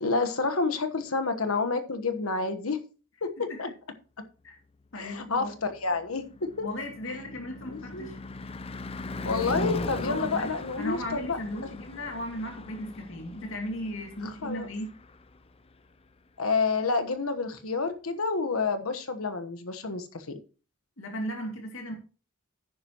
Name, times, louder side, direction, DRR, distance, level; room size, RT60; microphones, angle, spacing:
voice 1, 0.0-2.8 3.2-3.7 5.0-6.3 6.6-6.7 7.7-8.1 9.2-11.7 14.4-14.7 16.4-20.4, left 4 dB, 85° left, 1.3 m, -29 dB
voice 2, 4.9-5.5 6.6-8.2 10.0-14.9 21.0-21.9, equal, 65° left, 2.5 m, -36 dB
Car passing by / Truck / Engine, 5.5-15.7, left 2 dB, 25° left, 0.5 m, -39 dB
10.5 x 9.4 x 3.0 m
head